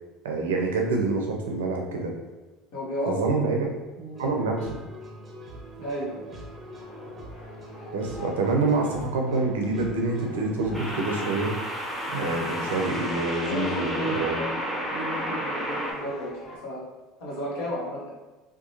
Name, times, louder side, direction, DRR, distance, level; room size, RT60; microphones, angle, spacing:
voice 1, 0.2-2.1 3.1-3.7 4.2-4.8 7.9-11.5 12.1-14.4, right 3 dB, 80° right, 1 dB, 0.5 m, -26 dB
voice 2, 2.7-3.2 4.0-4.2 5.8-6.2 13.4-14.6 14.9-16.8 17.2-18.0, equal, 65° left, -5 dB, 1.1 m, -33 dB
sound 1, 4.1-11.0, equal, 30° right, 0.6 m, -43 dB
sound 2, 5.6-16.6, left 1 dB, 40° left, 0.7 m, -44 dB
sound 3, 6.8-7.1 10.7-15.9, equal, 5° left, 0.9 m, -32 dB
2.8 x 2.3 x 2.7 m, 1.2 s
hypercardioid pair, 70°, 0 cm